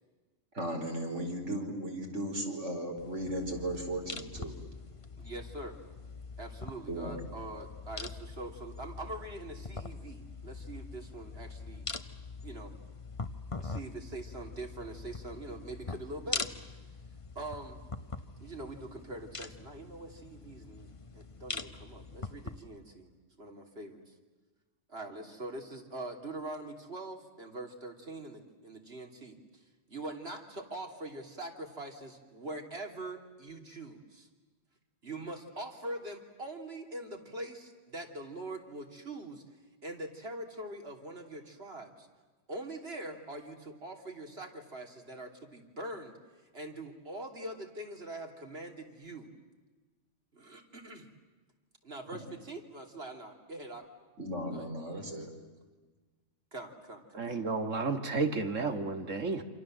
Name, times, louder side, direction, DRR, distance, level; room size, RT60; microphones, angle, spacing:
voice 1, 0.5-4.6 6.9-7.2 54.2-55.3, right 1 dB, 70° right, 5.0 m, -36 dB
sound 1, 3.0-22.6, left 3 dB, 25° left, 1.1 m, -43 dB
voice 2, 5.2-5.7 6.4-11.9 12.4-12.7 13.6-16.8 17.4-17.8 18.4-23.1 23.4-24.1 24.9-29.6 29.9-34.3 35.0-39.4 39.8-42.1 42.5-46.1 46.5-49.3 50.3-51.1 51.8-53.8 54.5-54.7 56.5-57.0, right 2 dB, 55° right, 3.4 m, -43 dB
voice 3, 57.2-59.4, right 4 dB, 90° right, 2.4 m, -32 dB
28.5 x 27.0 x 7.7 m
omnidirectional pair, 1.3 m